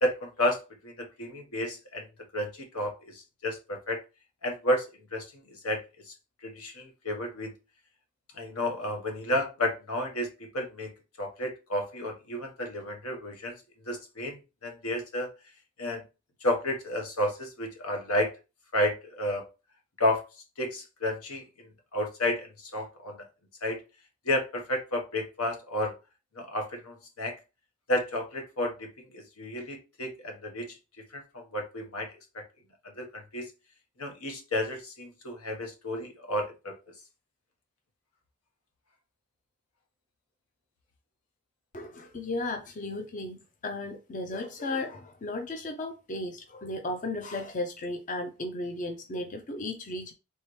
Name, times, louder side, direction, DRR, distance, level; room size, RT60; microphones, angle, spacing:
voice 1, 0.0-2.0 2.3-4.0 4.4-6.1 6.4-7.5 8.3-15.3 15.8-16.0 16.4-18.4 18.7-19.4 20.0-20.2 20.6-23.3 23.6-23.8 24.2-26.0 26.3-27.4 27.9-28.9 29.1-30.8 31.1-32.1 32.3-32.4 33.0-33.5 34.0-36.8, left 1 dB, 85° left, 1.2 m, -31 dB
voice 2, 41.7-43.4 43.6-50.1, left 2 dB, 35° left, 0.5 m, -35 dB
4.6 x 3.3 x 3.1 m
head